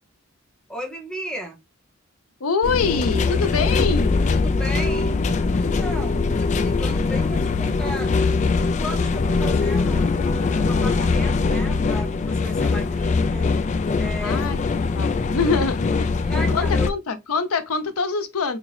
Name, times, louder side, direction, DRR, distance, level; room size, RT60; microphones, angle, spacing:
voice 1, 0.7-1.6 4.3-5.2 5.6-13.5 14.0-14.6 16.2-16.9, equal, 5° left, 0.8 m, -35 dB
voice 2, 2.4-4.3 14.2-14.6 14.9-18.6, left 4 dB, 90° left, 0.7 m, -25 dB
sound 1, 2.6-16.9, left 4 dB, 35° left, 0.3 m, -22 dB
3.6 x 2.7 x 3.2 m
head